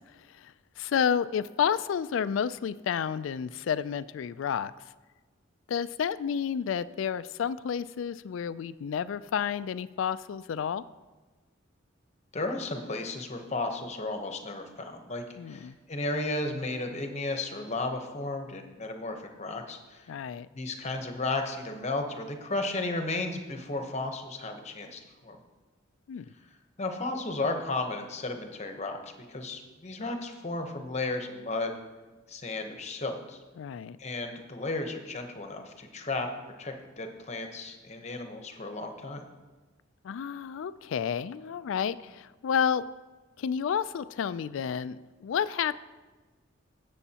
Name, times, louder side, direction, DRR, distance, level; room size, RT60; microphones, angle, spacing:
voice 1, 0.3-4.7 5.7-10.8 15.4-15.8 20.1-20.5 26.1-26.3 33.6-34.0 40.0-42.9 43.4-45.8, left 7 dB, 75° left, 16 dB, 0.3 m, -30 dB
voice 2, 12.3-20.1 20.5-25.4 26.8-31.7 32.3-33.4 34.0-36.3 36.6-39.2, left 2 dB, 35° left, 5 dB, 0.9 m, -34 dB
16.5 x 7.1 x 2.9 m, 1.3 s
head